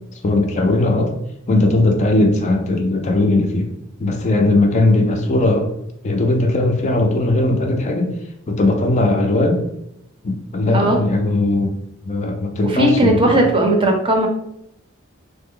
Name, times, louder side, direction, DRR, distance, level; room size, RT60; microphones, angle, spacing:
voice 1, 0.2-1.1 1.5-3.7 4.0-5.7 6.0-8.1 8.5-9.6 10.2-11.8 12.1-13.5, left 2 dB, 35° left, 3 dB, 0.4 m, -18 dB
voice 2, 12.6-14.3, right 1 dB, 25° right, 2 dB, 0.5 m, -16 dB
3.1 x 2.0 x 3.7 m, 0.76 s
head